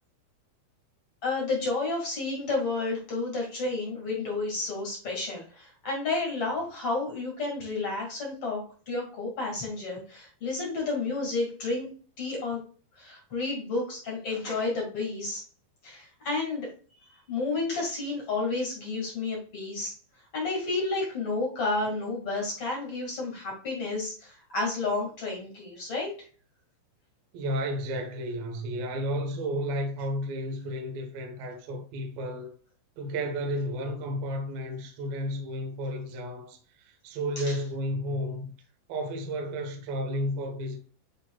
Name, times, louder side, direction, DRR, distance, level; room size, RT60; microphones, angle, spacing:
voice 1, 1.2-11.9 12.2-12.6 13.0-15.4 15.8-16.7 17.3-19.9 20.3-26.1 37.4-37.6, left 3 dB, 45° left, 1.9 m, -31 dB
voice 2, 27.3-32.5 33.0-38.5 38.9-40.8, equal, 70° right, 2.3 m, -32 dB
11.5 x 4.4 x 2.3 m
omnidirectional pair, 5.8 m